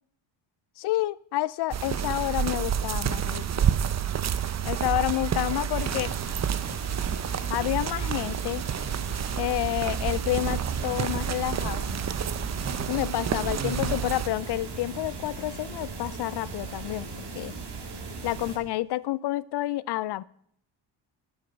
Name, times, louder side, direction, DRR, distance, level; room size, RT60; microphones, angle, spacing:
voice 1, 0.8-3.7 4.6-6.1 7.5-8.6 9.4-11.8 12.9-17.5 18.2-20.2, left 16 dB, 55° left, 21 dB, 0.5 m, -29 dB
sound 1, 1.7-14.3, right 8 dB, 35° right, 0.7 m, -29 dB
sound 2, 5.7-18.6, right 3 dB, 55° right, 2.5 m, -37 dB
8.9 x 8.1 x 5.3 m, 0.67 s
cardioid pair, 85°, 48 cm